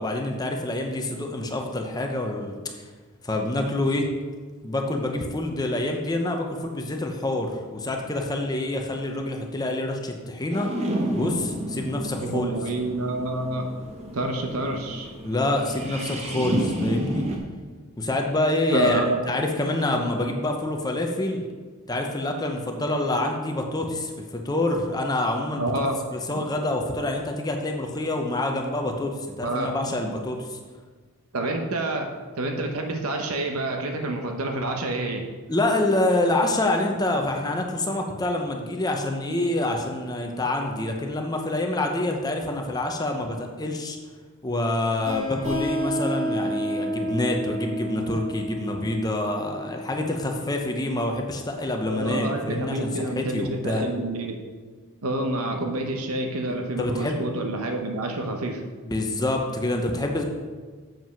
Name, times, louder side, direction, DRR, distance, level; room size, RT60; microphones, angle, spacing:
voice 1, 0.0-2.5 3.2-4.1 4.6-10.7 11.1-12.5 15.2-17.2 18.0-21.4 21.9-25.7 26.1-30.6 35.5-44.0 44.4-53.8 56.8-57.2 58.9-60.2, left 1 dB, 15° left, 2 dB, 0.7 m, -26 dB
sound 1, 10.5-17.4, right 1 dB, 30° right, 1.1 m, -31 dB
voice 2, 12.2-13.7 14.1-15.1 18.7-19.2 25.6-26.0 29.4-29.7 31.3-35.3 51.9-54.4 55.0-58.6, right 2 dB, 80° right, 3 dB, 0.9 m, -28 dB
sound 2, 45.0-50.4, equal, 60° right, 2.5 m, -30 dB
7.6 x 5.2 x 5.7 m, 1.5 s
head